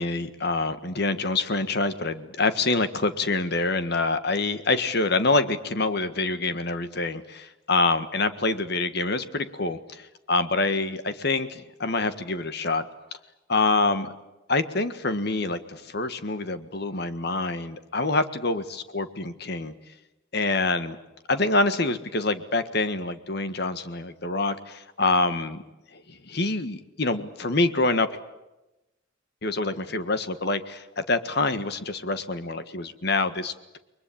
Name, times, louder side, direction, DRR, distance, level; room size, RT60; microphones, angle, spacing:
voice 1, 0.0-12.8 13.5-14.1 14.5-19.7 20.3-21.0 21.3-25.6 25.9-28.1 29.4-33.8, left 3 dB, 55° left, 11 dB, 1.6 m, -26 dB
29.0 x 22.0 x 8.7 m, 0.99 s
head